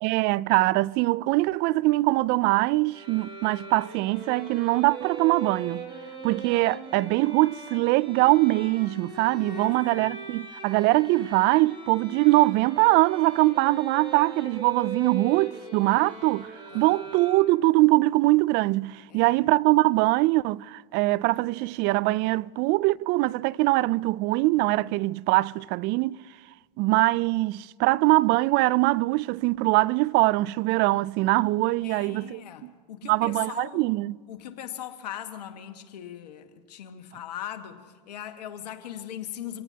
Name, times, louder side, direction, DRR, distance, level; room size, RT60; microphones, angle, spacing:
voice 1, 0.0-5.9 6.2-16.5 16.7-26.2 26.8-32.7 33.0-34.2, right 20 dB, 55° right, 0.4 m, -23 dB
sound 1, 2.9-17.8, right 3 dB, 25° right, 5.3 m, -40 dB
voice 2, 9.4-10.1 16.7-17.0 19.1-19.4 31.8-33.9 34.3-39.6, left 10 dB, 85° left, 1.6 m, -40 dB
26.5 x 18.0 x 2.9 m
hypercardioid pair, 95°, 21 cm